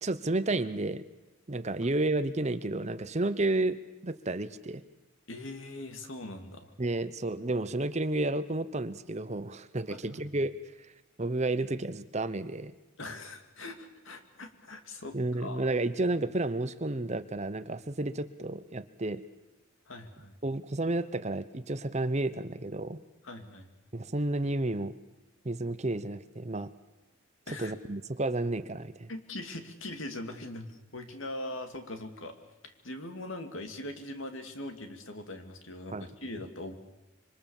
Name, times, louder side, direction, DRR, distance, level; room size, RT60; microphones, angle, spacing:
voice 1, 0.0-1.0 1.5-3.8 4.0-4.8 6.8-10.6 11.2-12.7 15.1-19.2 20.4-23.0 23.9-24.9 25.4-26.7 27.5-29.1 35.9-36.1, right 2 dB, 35° right, 13 dB, 0.9 m, -31 dB
voice 2, 5.3-6.7 9.9-10.2 13.0-15.7 19.9-20.3 23.2-23.7 27.5-27.7 29.1-32.4 32.6-36.7, left 1 dB, 70° left, 6 dB, 2.6 m, -41 dB
26.0 x 24.0 x 7.3 m, 1.0 s
head